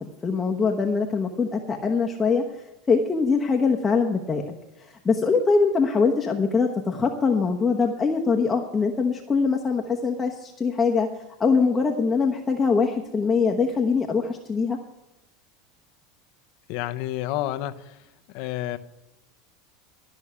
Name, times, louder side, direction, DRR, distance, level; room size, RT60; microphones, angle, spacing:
voice 1, 0.0-2.4 2.9-4.4 4.8-11.1 11.4-14.8, left 5 dB, 15° left, 0 dB, 1.1 m, -23 dB
voice 2, 16.7-18.0 18.3-18.8, left 14 dB, 60° left, 10 dB, 0.8 m, -29 dB
13.0 x 6.3 x 9.6 m, 0.94 s
supercardioid pair, 125°, 0 cm